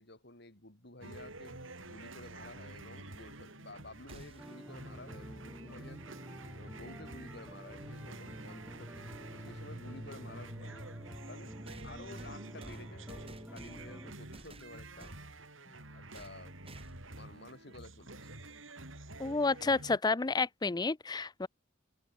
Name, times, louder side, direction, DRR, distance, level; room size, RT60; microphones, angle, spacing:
voice 1, 0.0-6.0 6.5-10.9 11.3-15.2 15.6-18.3, left 2 dB, 55° left, 7.6 m, -52 dB
sound 1, 1.0-20.0, right 2 dB, 80° right, 7.1 m, -49 dB
sound 2, 4.1-4.6 6.8-6.9 8.0-8.1 11.7-14.0 14.3-15.3 16.1-16.4 16.6-17.1, right 2 dB, 30° right, 7.5 m, -53 dB
sound 3, 4.4-14.1, equal, 10° right, 2.8 m, -49 dB
voice 2, 19.2-21.5, left 3 dB, 20° left, 0.5 m, -30 dB
head